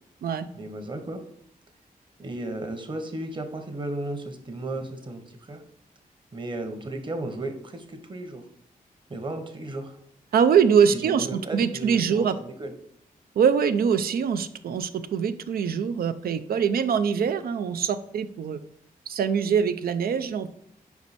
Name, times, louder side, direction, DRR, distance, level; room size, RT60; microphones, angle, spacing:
voice 1, 0.5-1.2 2.2-5.6 6.3-8.4 9.1-10.0 11.0-12.7, right 2 dB, 30° right, 6 dB, 1.0 m, -34 dB
voice 2, 10.3-12.4 13.4-18.6 19.1-20.5, right 7 dB, 85° right, 11 dB, 0.5 m, -23 dB
5.3 x 4.7 x 4.1 m, 0.72 s
wide cardioid pair, 100°, 15 cm